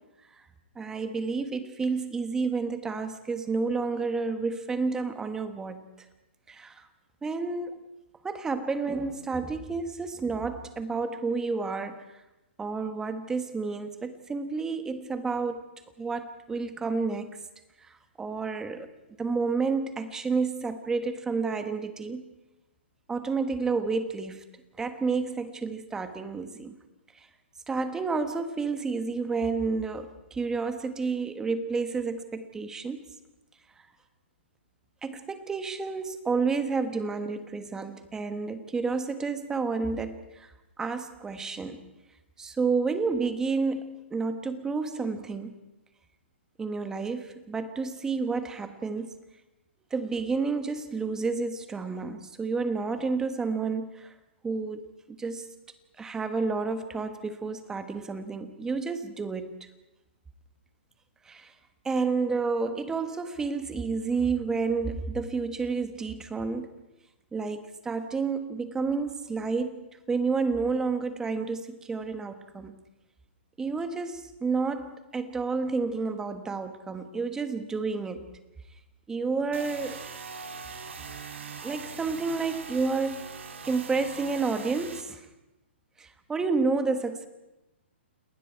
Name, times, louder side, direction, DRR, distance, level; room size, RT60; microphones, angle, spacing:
voice 1, 0.7-5.8 6.5-6.9 7.2-7.9 8.2-12.0 12.6-15.6 16.0-17.4 18.2-18.9 19.2-22.2 23.1-24.4 24.8-26.8 27.7-33.1 35.0-40.5 40.8-41.8 42.4-45.5 46.6-49.1 49.9-54.1 54.4-54.8 55.1-55.5 56.0-59.5 61.3-61.5 61.8-66.7 67.3-72.8 73.6-78.2 79.1-80.1 81.6-83.3 83.6-85.2 86.0-87.3, right 4 dB, 10° right, 10 dB, 1.3 m, -30 dB
sound 1, 79.5-85.0, right 5 dB, 75° right, 2.7 m, -41 dB
29.0 x 19.5 x 4.7 m, 0.98 s
hypercardioid pair, 150°, 7 cm